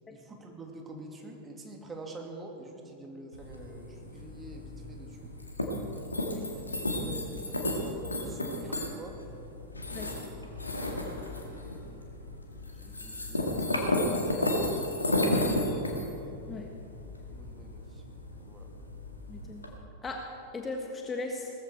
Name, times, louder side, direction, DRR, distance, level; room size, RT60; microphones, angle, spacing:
voice 1, 0.1-5.3 6.6-9.2 11.1-12.1 12.7-14.2 17.3-18.0 18.4-18.7, right 2 dB, 15° right, 1 dB, 2.3 m, -47 dB
sound 1, 3.3-19.7, left 1 dB, 80° left, 2.0 m, -33 dB
voice 2, 19.3-19.6 20.0-20.2 20.5-21.5, left 3 dB, 15° left, 2 dB, 1.4 m, -37 dB
18.5 x 14.5 x 4.5 m, 2.8 s
figure-of-eight pair, 90°, 0 cm